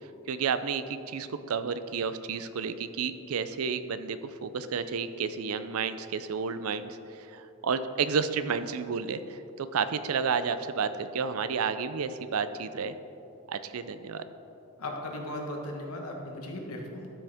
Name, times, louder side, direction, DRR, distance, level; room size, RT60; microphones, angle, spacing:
voice 1, 0.3-12.9 13.5-14.2, right 6 dB, 70° right, 12 dB, 0.5 m, -31 dB
voice 2, 14.8-17.1, left 1 dB, 75° left, 0 dB, 1.4 m, -37 dB
13.0 x 6.2 x 3.5 m, 2.9 s
head